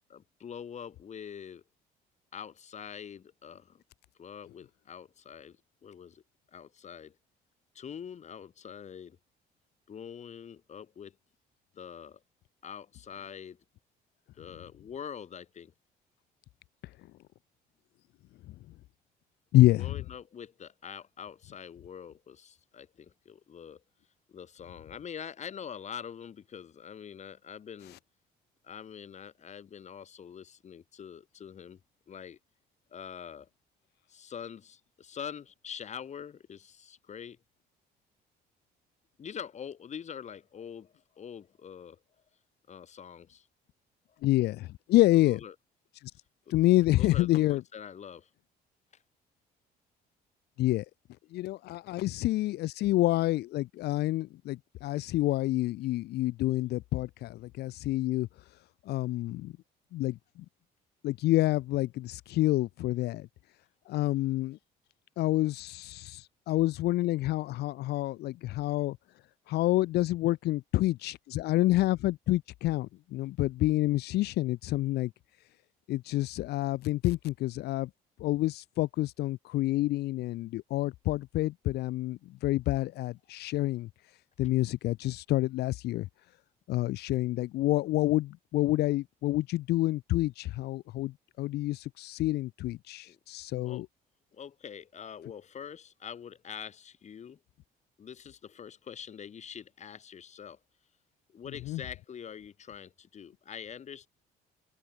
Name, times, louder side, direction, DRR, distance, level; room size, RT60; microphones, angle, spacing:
voice 1, 0.1-1.6 2.3-3.8 4.2-5.6 5.8-6.2 6.5-7.2 7.7-9.2 9.9-11.2 11.7-12.2 12.6-13.6 14.4-15.7 19.7-23.8 24.3-28.0 28.6-31.8 32.1-32.4 32.9-33.5 34.1-37.4 39.2-42.0 42.7-43.5 45.1-45.5 46.9-48.3 93.0-93.2 93.6-93.8 94.3-97.4 98.0-100.6 101.3-104.1, left 8 dB, 45° left, 4.6 m, -44 dB
voice 2, 19.5-19.9 44.2-45.4 46.0-46.1 46.5-47.6 50.6-50.8 51.3-58.3 58.9-59.5 59.9-60.2 61.0-63.3 63.9-64.6 65.2-69.0 69.5-75.1 75.9-77.9 78.2-83.9 84.4-86.1 86.7-93.9 101.7-101.8, left 16 dB, 75° left, 1.4 m, -28 dB
open air
cardioid pair, 110°, 17 cm